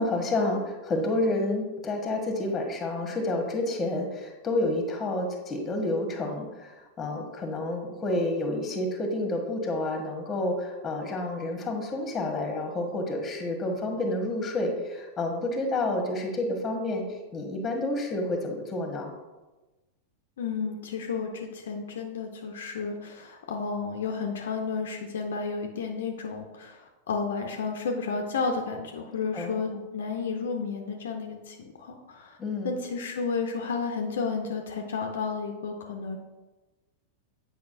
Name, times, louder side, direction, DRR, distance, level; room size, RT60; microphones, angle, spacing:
voice 1, 0.0-17.0 17.3-19.1 29.3-29.8 32.4-32.7, left 2 dB, 20° left, 3 dB, 1.2 m, -29 dB
voice 2, 20.4-32.4 32.6-36.2, left 5 dB, 60° left, 3 dB, 0.6 m, -32 dB
8.4 x 5.0 x 2.6 m, 1.1 s
figure-of-eight pair, 90°, 0 cm